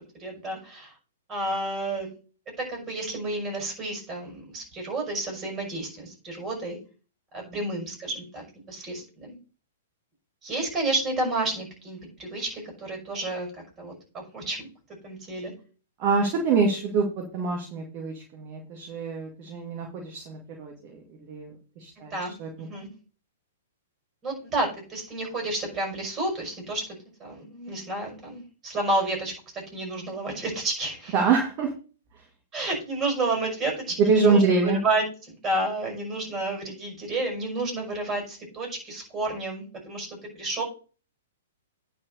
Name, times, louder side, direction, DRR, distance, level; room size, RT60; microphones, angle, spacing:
voice 1, 0.2-0.9 1.3-2.1 2.6-6.8 7.3-9.3 10.4-14.7 15.0-15.5 22.0-22.9 24.2-29.4 29.7-31.2 32.5-34.4 34.8-40.6, right 2 dB, 20° right, 2 dB, 6.1 m, -31 dB
voice 2, 16.0-22.5 31.1-31.7 34.0-34.8, right 4 dB, 35° right, 2 dB, 2.2 m, -25 dB
9.6 x 4.6 x 6.6 m, 0.36 s
figure-of-eight pair, 110°, 0 cm